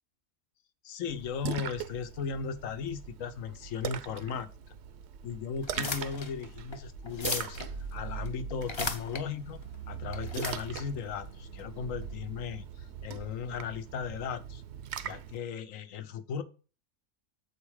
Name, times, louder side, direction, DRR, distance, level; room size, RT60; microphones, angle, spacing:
voice 1, 0.8-4.5 5.2-7.6 7.9-9.6 9.9-14.6 15.0-16.4, left 6 dB, 80° left, 11 dB, 1.1 m, -36 dB
Splash splatter, 1.1-15.4, right 8 dB, 65° right, 0.8 m, -41 dB
sound 1, 5.6-12.1, left 3 dB, 30° left, 0.6 m, -39 dB
7.1 x 4.8 x 4.8 m, 0.35 s
omnidirectional pair, 1.4 m